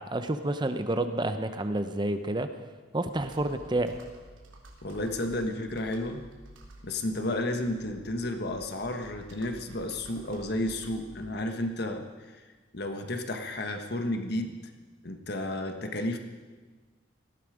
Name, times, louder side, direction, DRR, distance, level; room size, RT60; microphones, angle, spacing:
voice 1, 0.0-2.5 2.9-4.0, right 1 dB, 25° right, 9 dB, 0.7 m, -29 dB
Computer keyboard, 3.1-11.7, right 1 dB, 85° right, 3.0 m, -52 dB
voice 2, 4.8-6.2 6.8-12.0 12.3-12.4 12.7-14.5 15.0-16.2, left 1 dB, 55° left, 5 dB, 1.5 m, -32 dB
19.0 x 14.5 x 5.1 m, 1.3 s
head